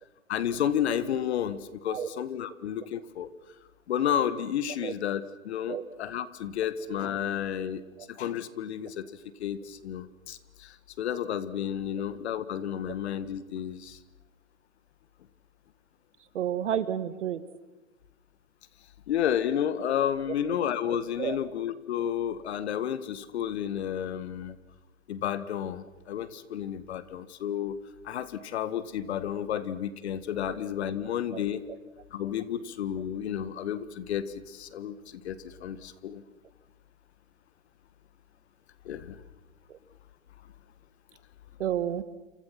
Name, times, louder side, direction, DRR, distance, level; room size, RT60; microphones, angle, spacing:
voice 1, 0.3-3.3 3.9-7.8 8.1-9.1 9.4-14.0 19.1-24.6 25.1-27.8 28.0-31.6 32.1-36.2 38.9-39.2, left 9 dB, 50° left, 14 dB, 1.7 m, -31 dB
voice 2, 16.3-17.4 21.2-21.4 31.3-31.8 39.7-39.8 41.6-42.0, right 10 dB, 60° right, 13 dB, 2.0 m, -31 dB
28.5 x 26.5 x 5.9 m, 1.1 s
hypercardioid pair, 130°, 41 cm